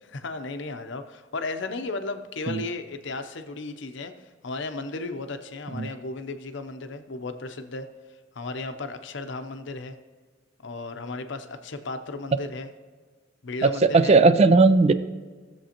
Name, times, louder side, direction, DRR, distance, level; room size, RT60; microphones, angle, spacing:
voice 1, 0.0-4.1 4.4-7.9 8.3-10.0 10.6-12.7 13.4-14.5, left 3 dB, 65° left, 8 dB, 0.7 m, -35 dB
voice 2, 13.6-14.9, right 3 dB, 35° right, 12 dB, 0.3 m, -17 dB
15.5 x 7.4 x 2.9 m, 1.4 s
head